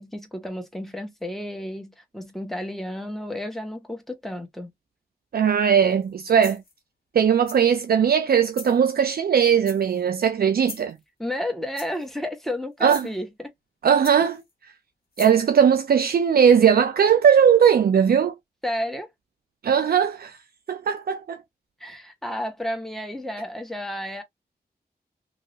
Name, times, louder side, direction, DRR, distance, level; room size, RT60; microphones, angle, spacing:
voice 1, 0.0-4.7 11.2-13.5 18.6-19.1 21.8-24.2, left 1 dB, ahead, 1.1 m, -32 dB
voice 2, 5.3-6.6 7.1-11.0 12.8-13.1 13.8-14.4 15.2-18.3 19.6-20.4 20.7-21.4, right 8 dB, 65° right, 0.4 m, -19 dB
sound 1, 5.9-6.1 6.4-6.8 7.5-7.8 8.5-8.8 9.6-10.1 10.6-11.0 11.7-12.2 12.8-13.1 14.0-14.5 15.1-15.4, left 4 dB, 65° left, 1.8 m, -41 dB
2.9 x 2.9 x 2.7 m
wide cardioid pair, 95°, 16 cm